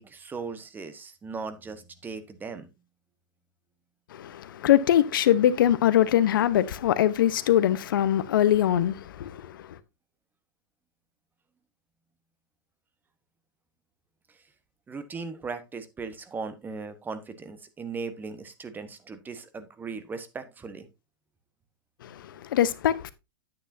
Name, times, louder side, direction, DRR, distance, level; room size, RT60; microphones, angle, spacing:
voice 1, 0.0-2.7 14.9-20.9, right 4 dB, 15° right, 1.2 m, -38 dB
voice 2, 4.1-9.7 22.0-23.1, left 11 dB, 65° left, 1.0 m, -23 dB
9.8 x 8.8 x 2.7 m
hypercardioid pair, 115°, 12 cm